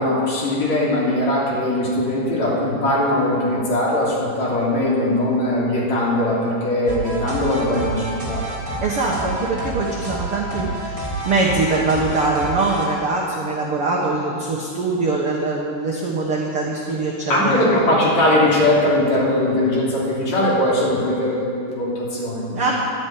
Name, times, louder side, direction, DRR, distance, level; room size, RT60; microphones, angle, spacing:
voice 1, 0.0-8.5 17.3-22.7, left 1 dB, 45° left, -6 dB, 4.2 m, -20 dB
sound 1, 6.9-12.8, right 1 dB, 25° right, 3.0 m, -29 dB
voice 2, 8.8-17.6 22.5-22.7, right 3 dB, 65° right, -2 dB, 1.4 m, -22 dB
12.0 x 10.5 x 9.1 m, 2.3 s
omnidirectional pair, 4.7 m